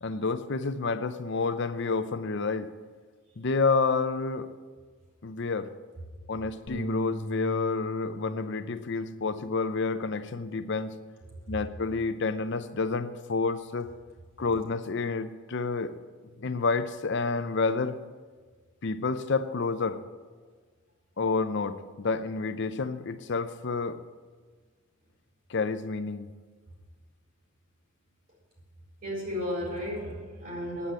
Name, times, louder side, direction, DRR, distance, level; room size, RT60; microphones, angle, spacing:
voice 1, 0.0-2.7 3.4-4.5 5.2-5.7 6.3-10.9 11.5-13.9 14.4-16.0 16.4-18.0 18.8-20.0 21.2-24.0 25.5-26.3, left 4 dB, 55° left, 11 dB, 0.6 m, -29 dB
Bass guitar, 6.7-11.1 11.5-12.9, right 1 dB, 80° left, 1.5 m, -42 dB
voice 2, 29.0-30.9, left 1 dB, 45° right, -2 dB, 4.2 m, -33 dB
9.6 x 8.6 x 7.5 m, 1.5 s
head